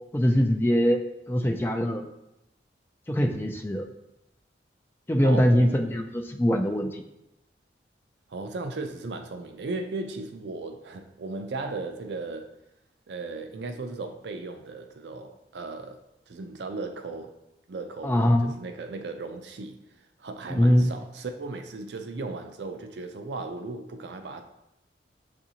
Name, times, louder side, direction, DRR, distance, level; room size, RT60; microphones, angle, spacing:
voice 1, 0.1-1.0 1.3-2.0 3.1-3.9 5.1-7.0 18.0-18.5 20.5-20.9, equal, 10° left, 3 dB, 0.3 m, -22 dB
voice 2, 5.2-6.0 8.3-12.5 13.1-16.0 16.3-17.3 17.7-19.8 20.2-24.4, right 3 dB, 75° right, 6 dB, 0.5 m, -36 dB
6.9 x 2.5 x 2.8 m, 0.87 s
head